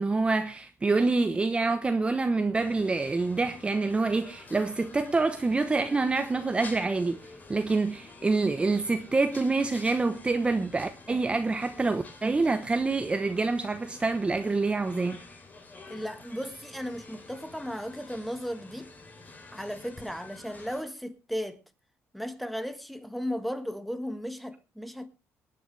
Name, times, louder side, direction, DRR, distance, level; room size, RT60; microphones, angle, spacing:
voice 1, 0.0-7.2 7.5-15.2, right 3 dB, 20° right, 0.9 m, -26 dB
sound 1, 2.6-20.8, left 3 dB, 30° left, 3.3 m, -49 dB
voice 2, 15.9-18.9 19.5-21.6 22.1-25.1, equal, ahead, 1.4 m, -35 dB
23.0 x 9.5 x 3.3 m
cardioid pair, 110°, 5 cm